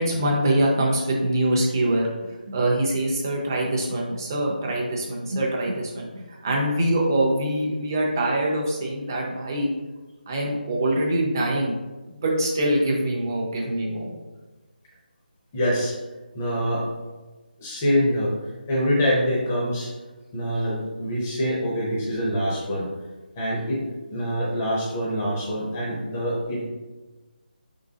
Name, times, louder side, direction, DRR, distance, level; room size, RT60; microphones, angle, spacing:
voice 1, 0.0-2.1 2.5-6.1 6.4-9.7 10.3-11.7 12.1-14.1, right 1 dB, 20° right, -2 dB, 0.6 m, -24 dB
voice 2, 15.5-16.0 16.3-16.9 17.6-18.3 18.7-19.9 20.3-22.9 23.4-23.8 24.1-26.7, equal, 15° left, -6 dB, 0.6 m, -25 dB
4.6 x 3.7 x 2.7 m, 1.2 s
figure-of-eight pair, 175°, 5 cm